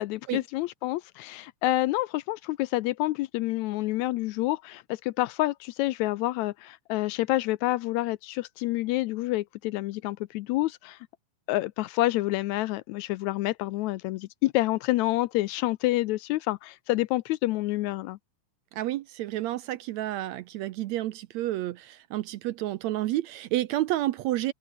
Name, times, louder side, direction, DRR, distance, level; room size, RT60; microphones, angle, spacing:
voice 1, 0.0-11.0 11.5-18.2, left 17 dB, 80° left, 1.7 m, -28 dB
voice 2, 18.7-24.5, right 15 dB, 75° right, 1.8 m, -30 dB
omnidirectional pair, 3.6 m